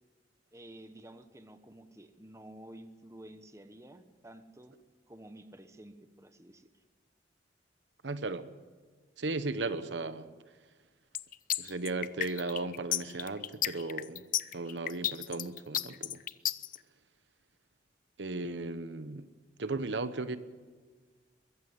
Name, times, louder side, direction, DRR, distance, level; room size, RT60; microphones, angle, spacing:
voice 1, 0.5-4.8 5.1-6.8, right 1 dB, 15° right, 1.1 m, -51 dB
voice 2, 8.0-8.5 9.2-10.3 11.6-14.2 14.5-16.2 18.2-19.3 19.6-20.4, right 3 dB, 80° right, 1.0 m, -36 dB
sound 1, 11.1-16.8, left 12 dB, 50° left, 0.6 m, -32 dB
22.5 x 15.5 x 8.1 m
head